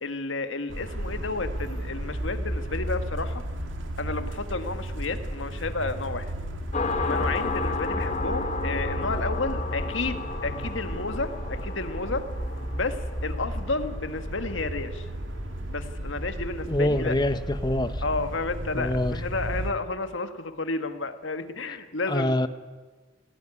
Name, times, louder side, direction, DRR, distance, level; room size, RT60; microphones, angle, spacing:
voice 1, 0.0-3.4 4.0-6.3 7.0-12.3 12.7-15.1 15.7-17.2 18.0-22.4, left 3 dB, 80° left, 9 dB, 1.6 m, -31 dB
sound 1, 0.7-19.7, equal, 80° right, 2.2 m, -34 dB
sound 2, 6.7-16.0, left 3 dB, 35° left, 1.6 m, -33 dB
voice 2, 16.7-18.0 18.7-19.2 22.1-22.5, left 1 dB, 20° left, 12 dB, 1.0 m, -25 dB
19.5 x 17.5 x 9.8 m, 1.4 s
head